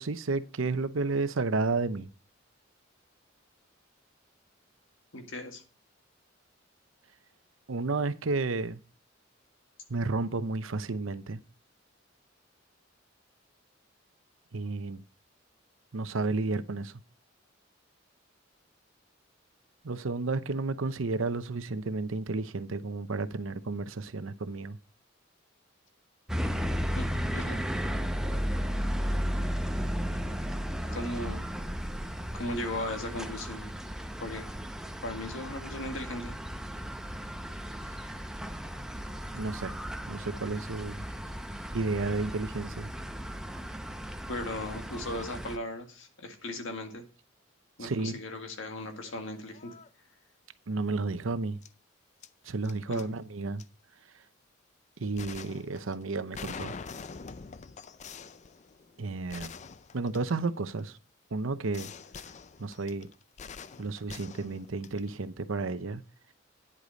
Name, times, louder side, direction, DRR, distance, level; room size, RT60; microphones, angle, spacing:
voice 1, 0.0-2.1 7.7-8.8 9.9-11.4 14.5-15.0 15.9-17.0 19.8-24.8 39.3-39.7 40.1-41.0 41.7-42.9 47.8-48.2 50.7-51.6 52.4-53.6 55.0-56.8 59.0-59.5 59.9-61.0 61.3-61.9 62.6-63.1 63.8-66.0, right 3 dB, 90° right, 0.7 m, -32 dB
voice 2, 5.1-5.6 27.0-27.6 30.9-31.5 32.3-33.7 34.2-34.4 35.0-36.3 44.3-47.0 47.8-49.7 52.9-53.1, left 1 dB, 75° left, 1.9 m, -37 dB
sound 1, 26.3-45.6, equal, 5° right, 0.7 m, -35 dB
sound 2, 48.9-49.1 49.5-49.9 51.6-51.7 52.2-53.0 53.6-53.7 55.2-60.8 61.7-65.2, left 5 dB, 35° left, 0.5 m, -45 dB
9.9 x 8.3 x 4.0 m
head